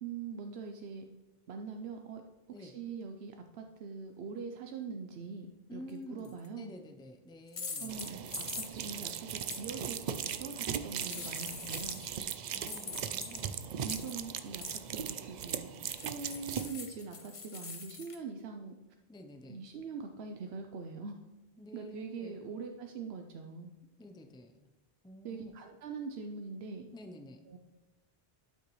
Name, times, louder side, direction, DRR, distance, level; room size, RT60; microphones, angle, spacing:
voice 1, 0.0-1.0 1.5-2.2 2.6-6.7 7.8-12.0 13.8-15.7 16.0-18.7 19.5-21.1 21.7-23.7 25.2-26.9 27.5-27.6, right 5 dB, 85° right, 5 dB, 0.9 m, -43 dB
voice 2, 5.7-8.0 12.5-13.7 19.1-19.6 21.6-22.4 24.0-24.7 25.0-25.5 26.9-27.4, left 1 dB, 5° left, 5 dB, 0.5 m, -50 dB
sound 1, 6.2-6.5 7.5-9.0 9.5-9.6 10.8-12.2 12.7-14.3 14.6-14.9 15.9-18.2, left 4 dB, 35° left, 0.8 m, -43 dB
sound 2, 7.9-16.7, right 8 dB, 55° right, 0.5 m, -39 dB
12.0 x 5.9 x 3.1 m, 1.0 s
omnidirectional pair, 1.0 m